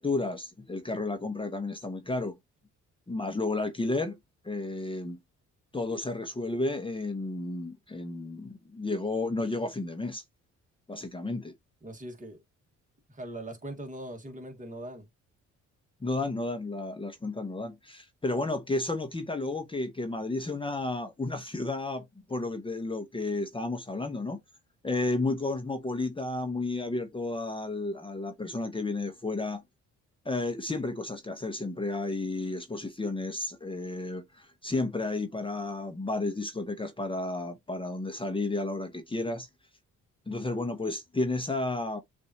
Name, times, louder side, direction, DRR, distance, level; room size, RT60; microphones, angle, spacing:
voice 1, 0.0-2.3 3.1-4.2 4.4-5.2 5.7-10.2 10.9-11.5 16.0-24.4 24.8-29.6 30.2-39.5 40.3-42.0, left 2 dB, 15° left, 0.9 m, -32 dB
voice 2, 11.8-12.4 13.1-15.1, right 1 dB, 25° right, 1.6 m, -41 dB
6.8 x 2.6 x 2.8 m
cardioid pair, 90°, 30 cm